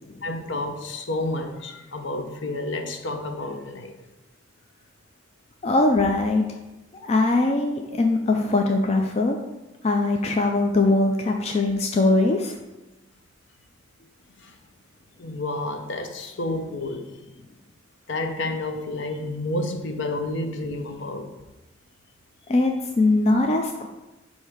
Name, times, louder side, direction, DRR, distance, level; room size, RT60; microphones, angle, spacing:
voice 1, 0.2-3.9 14.4-14.5 15.2-17.2 18.1-21.3, left 2 dB, 65° left, 6 dB, 0.7 m, -30 dB
voice 2, 5.6-6.5 7.0-9.4 9.8-12.6 22.5-23.9, left 2 dB, 30° left, 3 dB, 0.4 m, -21 dB
7.5 x 2.7 x 4.9 m, 1.0 s
head